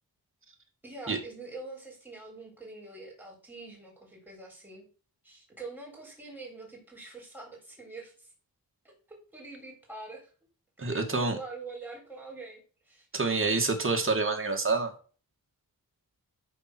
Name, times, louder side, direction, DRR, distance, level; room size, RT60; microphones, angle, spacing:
voice 1, 0.8-4.8 5.2-8.3 8.8-10.3 10.8-13.1, right 3 dB, 5° right, -1 dB, 4.2 m, -45 dB
voice 2, 10.8-11.4 13.1-14.9, right 3 dB, 35° right, 3 dB, 2.3 m, -27 dB
12.0 x 4.5 x 6.2 m, 0.39 s
wide cardioid pair, 100°, 35 cm